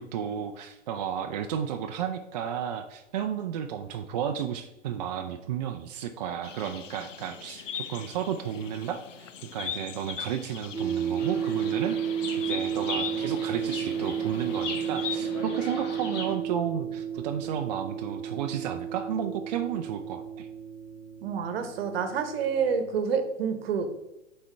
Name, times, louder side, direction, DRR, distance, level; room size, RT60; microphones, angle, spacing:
voice 1, 0.0-12.0 12.5-20.5, right 8 dB, 35° right, 5 dB, 0.4 m, -33 dB
sound 1, 6.4-15.2, left 8 dB, 75° left, 0.6 m, -40 dB
sound 2, 10.7-22.8, right 8 dB, 10° right, 0.9 m, -33 dB
Chirp tweet, 11.2-16.3, left 3 dB, 30° left, 1.1 m, -39 dB
voice 2, 21.2-23.9, right 6 dB, 55° right, 8 dB, 1.0 m, -28 dB
7.2 x 4.4 x 3.3 m, 0.96 s
figure-of-eight pair, 110°, 37 cm